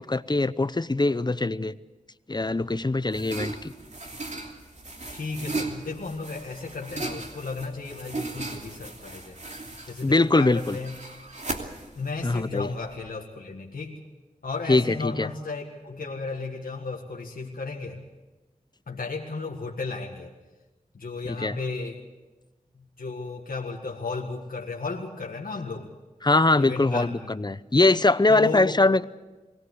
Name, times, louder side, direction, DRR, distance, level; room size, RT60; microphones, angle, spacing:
voice 1, 0.0-1.7 2.3-3.7 10.0-10.8 12.2-12.7 14.7-15.3 21.4-21.6 26.2-29.0, left 2 dB, 30° left, 15 dB, 0.8 m, -22 dB
sound 1, 2.5-13.1, right 2 dB, 55° right, 2.9 m, -37 dB
voice 2, 5.1-9.4 9.9-11.0 12.0-14.0 14.4-18.0 18.9-20.3 20.9-22.0 22.8-25.9 26.6-27.3 28.3-28.8, left 4 dB, 90° left, -1 dB, 1.9 m, -34 dB
22.5 x 18.0 x 8.1 m, 1.1 s
wide cardioid pair, 50°, 14 cm